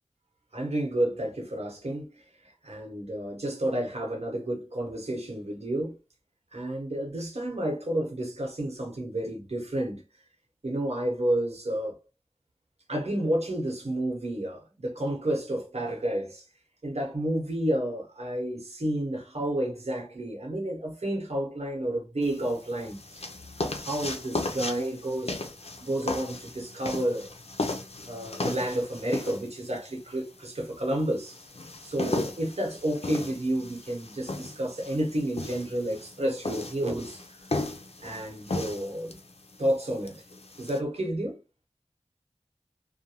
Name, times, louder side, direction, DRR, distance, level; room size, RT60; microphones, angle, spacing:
voice 1, 0.5-2.1 2.6-6.0 6.5-10.0 10.6-12.0 12.9-16.4 16.8-23.0 23.6-25.4 25.8-27.3 28.1-31.4 31.8-37.2 38.0-39.1 39.6-40.2 40.6-41.4, right 1 dB, 70° right, 1.1 m, -30 dB
sound 1, 22.2-40.8, left 2 dB, 65° left, 0.5 m, -36 dB
2.5 x 2.1 x 2.9 m
wide cardioid pair, 50°, 11 cm